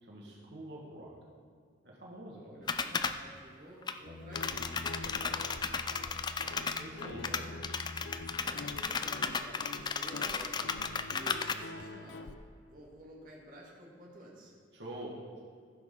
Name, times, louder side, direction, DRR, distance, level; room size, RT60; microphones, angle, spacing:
voice 1, 0.0-1.1 1.8-2.4 2.9-3.1 4.9-5.4 6.8-7.3 14.7-15.4, right 1 dB, 70° right, -3 dB, 1.8 m, -46 dB
voice 2, 2.4-4.8 6.4-7.5 8.4-12.3 12.6-14.6, right 1 dB, 50° right, -3 dB, 2.0 m, -52 dB
sound 1, 2.7-3.2 3.8-3.9 4.4-11.5, left 5 dB, 25° left, 0.3 m, -34 dB
Guitar, 4.1-12.3, left 2 dB, 75° left, 0.6 m, -45 dB
14.5 x 6.4 x 5.6 m, 2.2 s
head